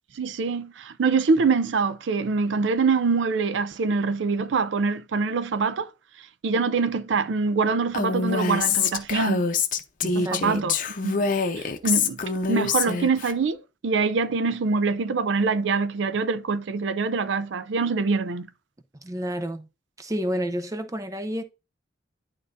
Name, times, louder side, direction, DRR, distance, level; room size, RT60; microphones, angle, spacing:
voice 1, 0.1-5.9 6.4-9.5 10.2-10.8 11.0-11.3 11.6-12.2 12.5-18.5, right 4 dB, 85° right, 0.5 m, -24 dB
Female speech woman speaking, 7.9-13.3, left 5 dB, 50° left, 0.7 m, -25 dB
voice 2, 10.0-10.7 19.0-19.7 20.0-21.4, equal, 20° right, 0.7 m, -30 dB
11.0 x 3.8 x 2.5 m
head